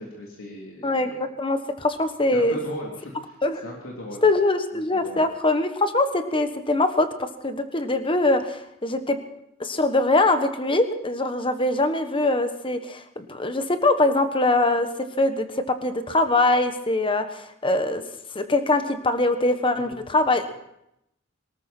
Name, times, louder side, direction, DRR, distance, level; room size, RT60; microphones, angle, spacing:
voice 1, 0.0-1.2 2.3-3.4 3.6-4.2 5.0-5.2 19.8-19.9, left 1 dB, 85° left, -2 dB, 3.5 m, -37 dB
voice 2, 0.8-2.6 3.4-3.6 4.2-9.2 9.6-14.9 15.2-18.0 18.3-20.5, left 2 dB, 25° left, 8 dB, 1.3 m, -23 dB
23.0 x 13.5 x 4.5 m, 0.79 s
head